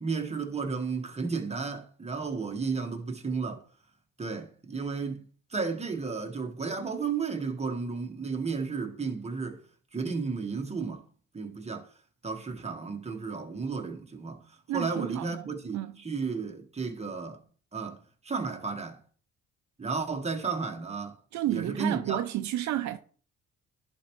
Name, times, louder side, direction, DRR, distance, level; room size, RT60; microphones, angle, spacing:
voice 1, 0.0-3.6 4.2-5.2 5.5-9.6 9.9-11.0 11.3-11.9 12.2-17.4 17.7-19.0 19.8-21.2 21.5-22.2, right 4 dB, 20° right, 1.4 m, -33 dB
voice 2, 14.7-15.5 15.7-16.0 21.3-23.0, right 13 dB, 70° right, 0.6 m, -31 dB
11.0 x 4.4 x 3.1 m
cardioid pair, 90°, 30 cm